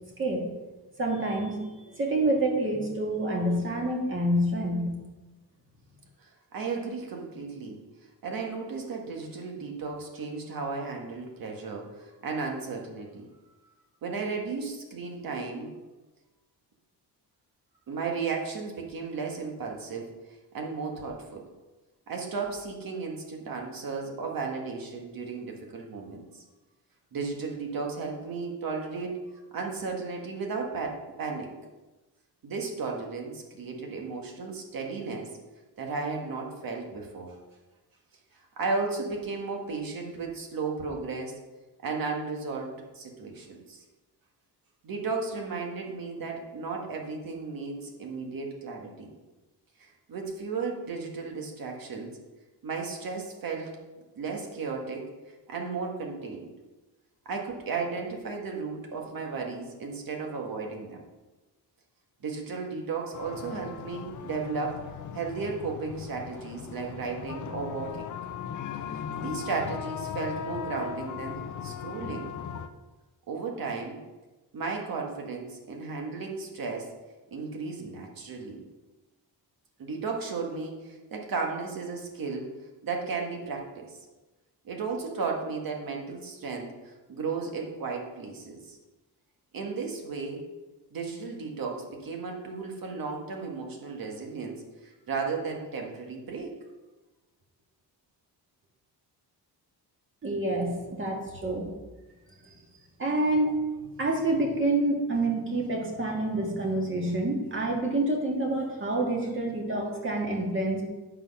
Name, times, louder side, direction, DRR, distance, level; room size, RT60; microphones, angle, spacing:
voice 1, 0.2-0.5 1.0-4.9 100.2-101.7 103.0-103.6 104.0-110.8, right 1 dB, 30° right, 0 dB, 2.0 m, -27 dB
voice 2, 6.2-7.8 8.2-13.3 14.0-15.7 17.9-21.5 22.1-26.4 27.1-29.2 29.5-31.5 32.4-35.3 35.8-37.3 38.6-41.4 41.8-43.8 44.8-49.1 49.8-52.1 52.6-53.7 54.1-56.5 57.2-61.0 62.2-64.8 65.1-68.1 69.2-72.3 73.3-74.0 74.5-76.9 77.3-78.6 79.8-82.5 82.8-84.0 84.6-88.8 89.5-90.4 90.9-96.5 102.4-102.5, right 4 dB, 60° right, 1 dB, 1.8 m, -34 dB
sound 1, 63.1-72.7, left 7 dB, 50° left, 0.6 m, -38 dB
8.9 x 6.2 x 5.5 m, 1.1 s
wide cardioid pair, 155°, 40 cm